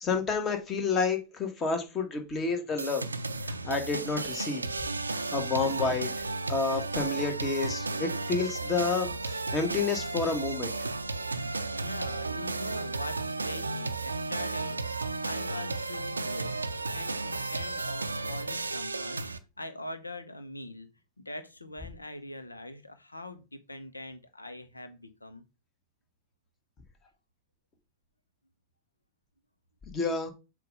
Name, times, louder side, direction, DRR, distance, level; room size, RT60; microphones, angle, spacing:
voice 1, 0.0-3.0 3.5-4.6 5.1-10.7 29.9-30.3, left 4 dB, 25° left, 1.4 m, -30 dB
sound 1, 2.8-19.4, right 3 dB, 80° right, 0.5 m, -34 dB
voice 2, 11.7-19.2 19.6-20.9 21.2-25.4, left 2 dB, 80° left, 0.8 m, -42 dB
7.5 x 2.5 x 5.3 m
figure-of-eight pair, 90°, 0 cm